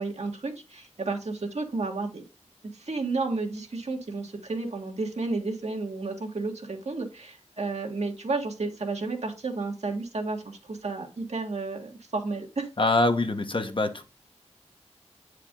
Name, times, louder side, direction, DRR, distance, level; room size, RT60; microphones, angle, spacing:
voice 1, 0.0-2.2 2.7-12.7, right 3 dB, 70° right, 1.7 m, -32 dB
voice 2, 12.8-14.0, left 2 dB, 45° left, 1.1 m, -24 dB
8.6 x 4.8 x 3.7 m
wide cardioid pair, 55°, 12 cm